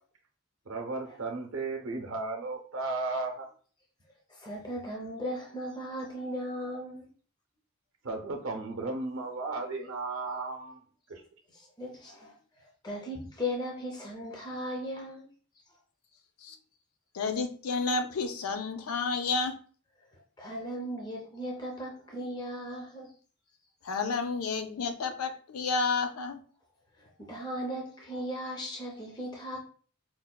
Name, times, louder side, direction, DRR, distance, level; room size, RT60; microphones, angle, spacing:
voice 1, 0.7-3.5 8.0-10.8 11.1-11.2, right 3 dB, 65° right, 3 dB, 0.5 m, -34 dB
voice 2, 4.3-7.1 11.5-15.3 20.4-23.1 27.0-29.6, equal, 20° left, -1 dB, 0.5 m, -37 dB
voice 3, 17.1-19.5 23.8-26.4, left 4 dB, 85° left, 7 dB, 0.5 m, -30 dB
4.4 x 2.1 x 2.2 m, 0.42 s
head